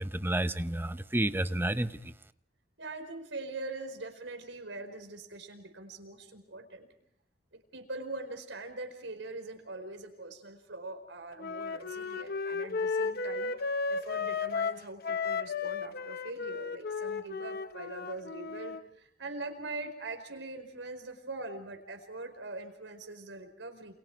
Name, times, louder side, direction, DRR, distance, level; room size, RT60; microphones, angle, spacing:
voice 1, 0.0-2.1, right 1 dB, 10° right, 11 dB, 0.8 m, -30 dB
voice 2, 2.8-6.9 7.5-23.9, right 2 dB, 85° right, 5 dB, 4.7 m, -42 dB
Wind instrument woodwind instrument, 11.4-18.8, left 4 dB, 55° left, 0.9 m, -34 dB
29.0 x 28.0 x 4.7 m, 0.70 s
head